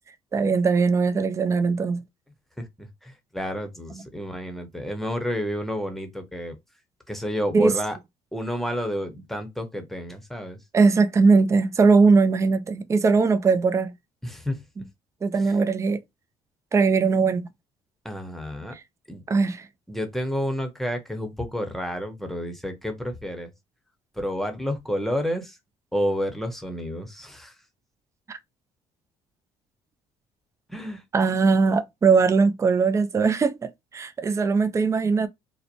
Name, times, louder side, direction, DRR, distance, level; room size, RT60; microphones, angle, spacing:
voice 1, 0.3-2.0 3.9-4.0 7.5-7.7 10.7-13.9 14.8-14.9 15.2-16.0 16.7-17.5 19.3-19.7 28.3-28.4 31.1-35.3, right 4 dB, 25° right, 0.4 m, -20 dB
voice 2, 2.6-6.6 7.1-8.0 8.3-10.6 14.2-14.6 18.0-18.7 19.1-19.2 19.9-23.5 24.2-25.5 25.9-27.5 30.7-31.0, equal, ahead, 0.8 m, -30 dB
2.8 x 2.1 x 2.5 m
supercardioid pair, 75°, 13 cm